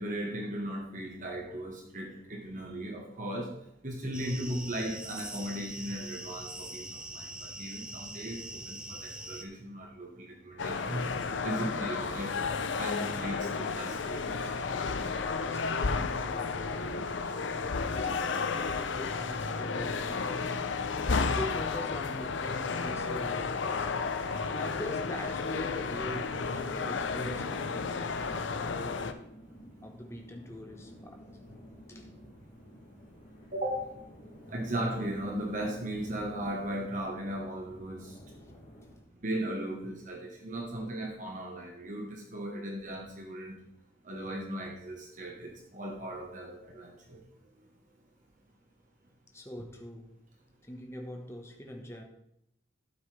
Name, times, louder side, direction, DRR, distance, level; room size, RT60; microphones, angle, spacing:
voice 1, 0.0-3.5 3.8-11.1 11.4-14.5 15.2-15.3 20.8-21.1 33.5-33.9 34.5-38.2 39.2-43.6 44.0-47.2, right 1 dB, 40° right, 0 dB, 1.3 m, -37 dB
sound 1, 4.1-9.4, right 1 dB, 5° right, 0.6 m, -43 dB
sound 2, 10.6-29.1, left 4 dB, 80° left, 0.7 m, -32 dB
voice 2, 15.4-17.6 17.9-20.5 21.1-23.9 24.6-28.1 28.5-29.2 29.8-31.2 31.9-32.1 38.4-38.6 49.3-50.1 50.6-52.0, left 1 dB, 15° left, 2 dB, 1.2 m, -43 dB
sound 3, 21.4-39.0, equal, 45° left, 3.2 m, -53 dB
12.5 x 8.0 x 3.3 m, 0.79 s
head